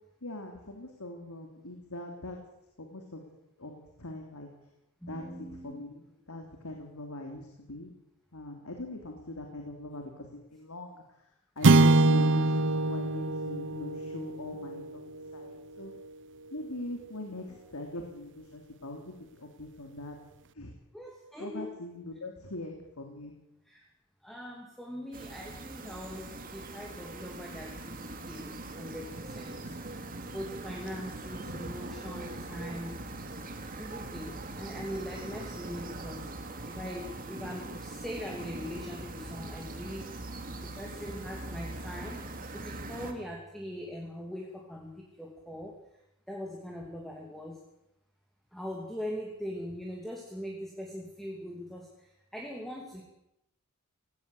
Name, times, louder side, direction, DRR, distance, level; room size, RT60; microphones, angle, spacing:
voice 1, 0.2-2.4 2.8-3.2 3.6-4.5 5.0-7.9 8.3-15.9 16.5-20.2 20.5-20.7 21.4-23.3, left 1 dB, 75° left, 2 dB, 3.2 m, -42 dB
voice 2, 5.0-5.8 20.9-21.7 23.7-23.9 24.2-29.6 30.3-33.0 33.8-36.3 36.7-40.1 40.6-45.8 46.3-47.6 48.5-53.0, equal, ahead, 0 dB, 2.8 m, -41 dB
sound 1, 11.6-16.1, right 2 dB, 55° right, 0.8 m, -25 dB
sound 2, 25.1-43.1, right 2 dB, 40° right, 2.6 m, -41 dB
18.5 x 17.5 x 8.4 m, 0.83 s
head